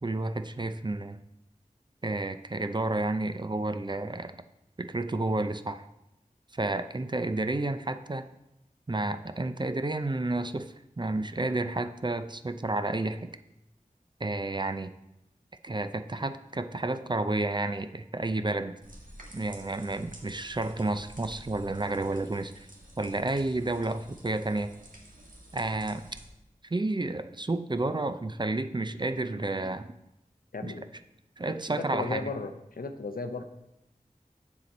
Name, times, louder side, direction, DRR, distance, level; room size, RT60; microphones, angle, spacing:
voice 1, 0.0-1.2 2.0-4.4 4.8-5.9 6.5-8.3 8.9-13.3 14.2-14.9 15.6-18.7 19.3-22.5 23.0-24.7 25.5-26.0 26.7-29.9 30.6-30.7 31.4-32.3, right 2 dB, 30° right, 10 dB, 0.4 m, -31 dB
sound 1, 18.8-26.3, right 1 dB, 65° right, 1.5 m, -50 dB
voice 2, 30.5-30.9 31.6-33.4, left 3 dB, 80° left, 7 dB, 0.7 m, -35 dB
7.0 x 6.7 x 4.1 m, 0.88 s
wide cardioid pair, 40°, 15 cm